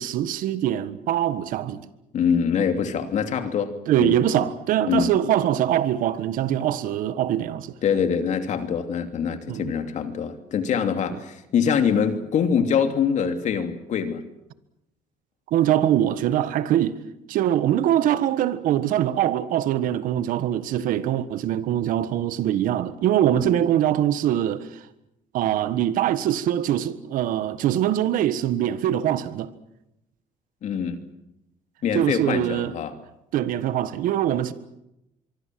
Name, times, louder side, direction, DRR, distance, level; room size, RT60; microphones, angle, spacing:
voice 1, 0.0-1.9 3.9-7.7 9.5-9.7 15.5-17.0 17.3-24.7 25.3-29.5 31.9-32.7 33.3-34.5, right 11 dB, 75° right, 1.5 m, -23 dB
voice 2, 2.1-3.7 4.0-4.5 4.9-5.1 7.8-14.2 23.4-23.6 30.6-31.0 31.8-32.9, left 7 dB, 60° left, 2.9 m, -24 dB
25.0 x 24.0 x 7.7 m
cardioid pair, 105°, 14 cm